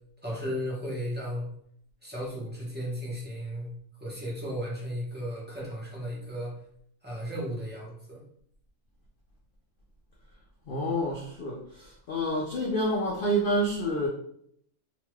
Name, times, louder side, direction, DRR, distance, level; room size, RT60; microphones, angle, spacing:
voice 1, 0.2-1.5 2.0-3.7 4.0-6.5 7.0-8.2, equal, 10° right, -6 dB, 0.6 m, -35 dB
voice 2, 10.7-14.1, equal, 85° left, -2 dB, 0.4 m, -28 dB
2.9 x 2.2 x 3.1 m, 0.67 s
omnidirectional pair, 1.5 m